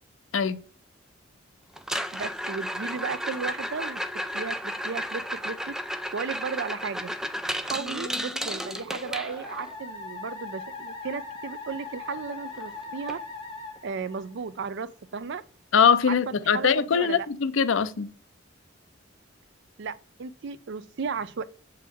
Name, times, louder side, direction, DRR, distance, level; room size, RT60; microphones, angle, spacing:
sound 1, 1.8-9.7 12.0-12.1 12.3-12.7 13.1-13.2 13.8-13.9 15.7-15.8, equal, 5° right, 0.4 m, -33 dB
voice 1, 2.1-4.0 4.3-5.7 6.1-7.1 7.6-13.2 13.8-15.4 16.1-16.2 16.4-17.3 19.8-21.4, right 5 dB, 65° right, 0.5 m, -34 dB
Musical instrument, 7.8-14.7, left 3 dB, 25° left, 1.4 m, -40 dB
voice 2, 15.7-18.1, left 6 dB, 75° left, 0.5 m, -22 dB
7.2 x 4.6 x 3.5 m
head